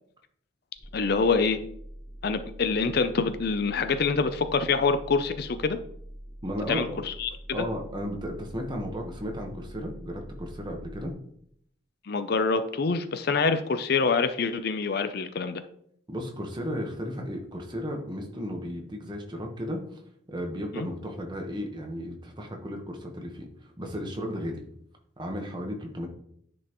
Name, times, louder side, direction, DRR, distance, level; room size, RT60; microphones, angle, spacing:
sound 1, 0.8-11.1, equal, 30° left, 1.5 m, -44 dB
voice 1, 0.9-1.6 2.2-5.8 6.7-7.3 7.6-7.7 12.0-15.6 20.7-20.9, left 4 dB, 50° left, 10 dB, 0.5 m, -26 dB
voice 2, 6.4-7.0 7.5-11.1 16.1-20.0 20.3-23.5 23.8-24.6 25.2-26.1, equal, 25° right, 2 dB, 1.2 m, -34 dB
9.9 x 5.4 x 3.0 m, 0.68 s
head